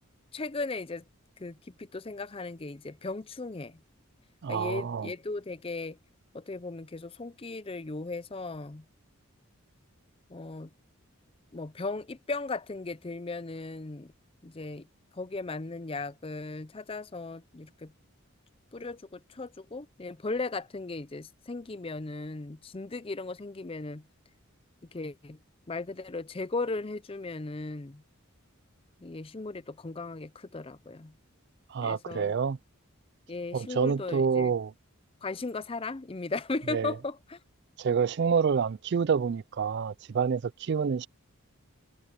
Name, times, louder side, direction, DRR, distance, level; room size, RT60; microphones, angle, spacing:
voice 1, 0.3-1.1 1.4-3.8 4.5-6.0 6.3-8.8 10.3-10.7 11.5-14.1 14.4-14.9 15.1-17.9 18.7-24.0 24.9-25.4 25.7-28.0 29.0-31.2 31.8-32.3 33.3-34.5 35.2-37.4, left 3 dB, 25° left, 0.5 m, -37 dB
voice 2, 4.4-5.1 31.7-32.6 33.5-34.7 36.7-36.9 37.8-41.1, right 6 dB, 50° right, 0.4 m, -27 dB
head